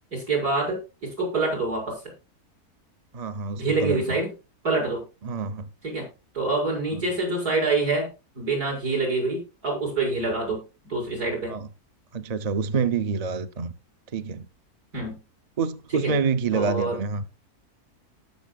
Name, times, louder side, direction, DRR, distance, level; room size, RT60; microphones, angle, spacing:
voice 1, 0.1-2.0 3.5-4.3 4.6-5.0 5.8-6.1 6.3-8.1 8.4-11.5 14.9-15.2 16.0-16.1 16.5-17.0, right 3 dB, 75° right, 7.2 m, -26 dB
voice 2, 3.1-4.2 5.2-5.7 6.9-7.0 11.5-11.7 12.1-13.7 14.1-14.5 15.6-17.2, right 5 dB, 35° right, 0.6 m, -27 dB
18.5 x 7.5 x 2.4 m
omnidirectional pair, 1.6 m